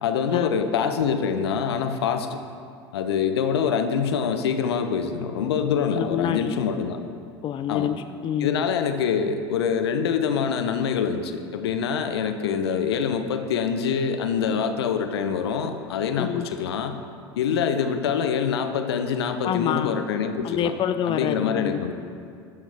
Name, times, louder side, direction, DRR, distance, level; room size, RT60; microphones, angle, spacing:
voice 1, 0.0-2.4 2.9-7.0 7.7-7.9 8.4-17.0 17.3-20.7 21.0-21.9, left 7 dB, 75° left, 8 dB, 0.9 m, -25 dB
voice 2, 5.9-6.6 7.4-8.6 12.7-12.9 16.2-16.5 19.4-20.0 20.4-21.9, left 9 dB, 40° left, 10 dB, 0.5 m, -27 dB
14.5 x 12.5 x 3.5 m, 2.3 s
hypercardioid pair, 75°, 14 cm